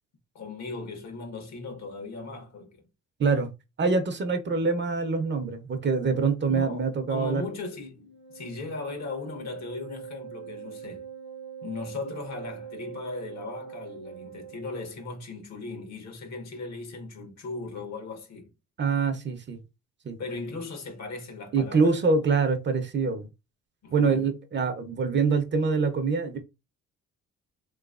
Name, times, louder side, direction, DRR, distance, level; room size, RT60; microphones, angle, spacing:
voice 1, 0.3-2.8 4.5-4.6 6.5-11.1 11.6-18.5 20.2-22.0 23.8-24.3, left 3 dB, 65° left, 1.2 m, -38 dB
voice 2, 3.8-7.5 18.8-19.6 20.0-20.2 21.5-23.3 23.9-26.4, right 4 dB, 35° right, 0.7 m, -25 dB
Wind instrument woodwind instrument, 8.1-15.1, right 8 dB, 35° left, 0.7 m, -43 dB
3.2 x 3.1 x 2.4 m
cardioid pair, 90°, 30 cm